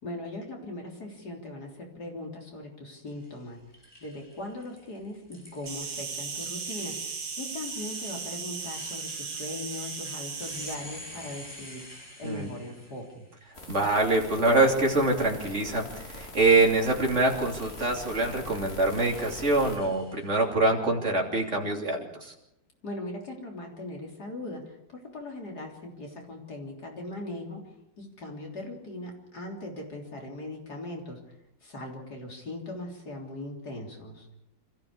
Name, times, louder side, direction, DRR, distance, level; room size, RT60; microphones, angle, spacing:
voice 1, 0.0-3.6 4.0-11.9 12.2-13.3 22.8-27.6 28.0-31.4 31.6-34.3, left 2 dB, 55° left, 0 dB, 4.1 m, -39 dB
sound 1, 3.1-13.4 13.9-14.6 17.3-18.4 18.9-20.4, left 1 dB, 10° left, 4.4 m, -48 dB
Insect, 5.7-10.7, right 5 dB, 85° right, 2.5 m, -36 dB
sound 2, 13.5-19.8, left 2 dB, 30° left, 3.1 m, -42 dB
voice 2, 13.7-22.3, right 2 dB, 40° right, 1 dB, 3.3 m, -25 dB
26.5 x 14.5 x 6.7 m, 0.84 s
omnidirectional pair, 2.0 m